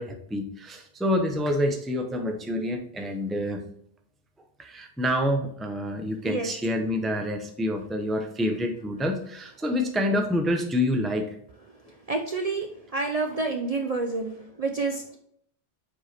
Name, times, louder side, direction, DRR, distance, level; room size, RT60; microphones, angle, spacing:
voice 1, 0.0-3.6 4.6-11.3, left 1 dB, ahead, 4 dB, 0.5 m, -27 dB
voice 2, 12.1-12.7 12.9-15.2, right 3 dB, 45° right, 3 dB, 0.5 m, -28 dB
4.8 x 4.7 x 4.3 m, 0.67 s
omnidirectional pair, 1.1 m